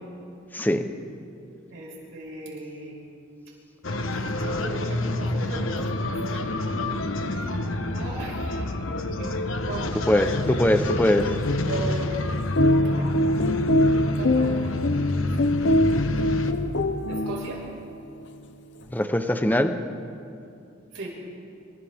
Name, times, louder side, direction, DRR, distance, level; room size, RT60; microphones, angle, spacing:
voice 1, 0.5-0.9 10.1-11.3 18.9-19.8, left 1 dB, 10° left, 8 dB, 0.9 m, -22 dB
voice 2, 1.7-3.0 4.1-6.4 7.3-7.6 7.9-9.3 9.6-9.9 11.3-11.4 11.7-12.2 12.8-13.5 14.2-14.7 15.2-15.5 17.1-17.6 20.9-21.1, right 2 dB, 70° right, -3 dB, 5.6 m, -37 dB
sound 1, 3.8-16.5, left 2 dB, 90° left, 1.2 m, -29 dB
sound 2, 10.2-17.8, left 1 dB, 60° left, 0.8 m, -24 dB
28.0 x 25.5 x 3.7 m, 2.6 s
head